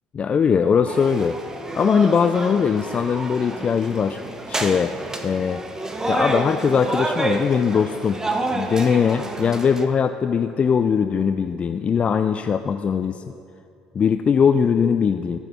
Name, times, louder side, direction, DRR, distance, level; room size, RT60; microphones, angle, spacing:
voice 1, 0.1-1.4 1.7-4.2 4.5-4.9 5.2-5.6 6.1-8.2 8.5-13.2 13.9-15.4, left 6 dB, 35° left, 9 dB, 0.4 m, -20 dB
sound 1, 0.9-9.9, right 2 dB, 15° right, 1.1 m, -29 dB
13.5 x 6.1 x 7.0 m, 2.5 s
hypercardioid pair, 60°, 3 cm